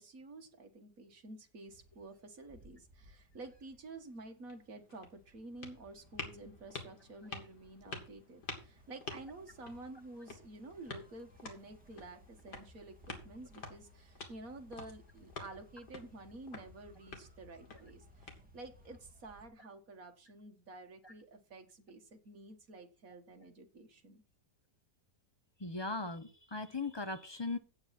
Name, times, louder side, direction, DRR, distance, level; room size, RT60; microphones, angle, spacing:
voice 1, 0.0-24.2, right 2 dB, 55° right, 5 dB, 2.1 m, -51 dB
sound 1, 1.7-19.5, equal, 5° right, 2.5 m, -62 dB
sound 2, 4.4-18.9, left 4 dB, 75° left, 2.7 m, -50 dB
voice 2, 25.6-27.6, left 3 dB, 35° left, 9 dB, 0.4 m, -38 dB
8.7 x 8.7 x 5.9 m, 0.35 s
omnidirectional pair, 1.8 m